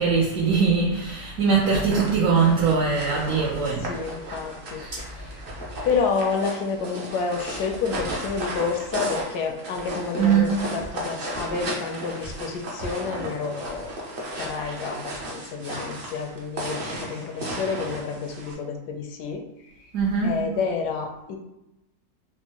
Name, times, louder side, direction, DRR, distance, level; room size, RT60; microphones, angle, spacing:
voice 1, 0.0-4.0 4.8-6.0 10.2-10.6 19.9-20.4, right 5 dB, 65° right, -4 dB, 1.0 m, -22 dB
sound 1, 1.5-18.5, right 1 dB, 50° right, 0.6 m, -35 dB
voice 2, 3.8-4.8 5.8-14.0 14.4-19.7 20.2-21.4, left 5 dB, 75° left, 3 dB, 1.1 m, -29 dB
4.4 x 2.1 x 2.9 m, 0.91 s
omnidirectional pair, 1.9 m